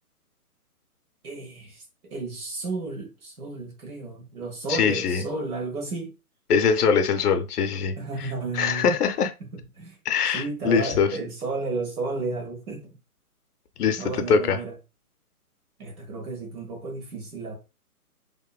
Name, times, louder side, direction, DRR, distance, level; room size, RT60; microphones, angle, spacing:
voice 1, 1.2-1.8 2.1-6.1 8.0-8.9 9.4-10.0 10.3-12.9 14.0-14.7 15.8-17.5, right 3 dB, 70° right, 1.2 m, -33 dB
voice 2, 4.7-5.2 6.5-8.0 8.5-9.3 10.1-11.1 13.8-14.6, left 6 dB, 85° left, 0.6 m, -22 dB
2.9 x 2.1 x 2.2 m
hypercardioid pair, 160°, 45 cm